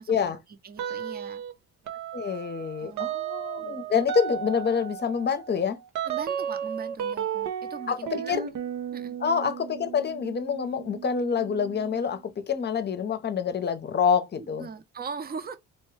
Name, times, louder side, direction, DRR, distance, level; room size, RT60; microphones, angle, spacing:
voice 1, 0.0-1.4 2.8-3.1 6.0-8.6 8.9-9.1 14.4-15.6, right 5 dB, 30° right, 0.7 m, -40 dB
sound 1, 0.8-1.5 1.9-12.2, right 9 dB, 75° right, 0.7 m, -34 dB
voice 2, 2.1-5.8 7.9-8.4 9.2-14.7, left 6 dB, 35° left, 0.7 m, -27 dB
4.4 x 2.2 x 3.2 m
cardioid pair, 90°, 30 cm